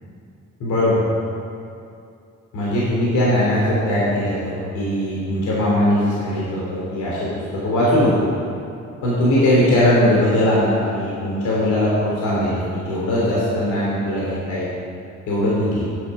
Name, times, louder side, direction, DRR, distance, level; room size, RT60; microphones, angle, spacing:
voice 1, 0.6-1.1 2.5-8.3 9.0-14.7 15.3-15.8, left 1 dB, 75° left, -7 dB, 3.0 m, -20 dB
10.0 x 8.4 x 5.5 m, 2.5 s
cardioid pair, 90°, 30 cm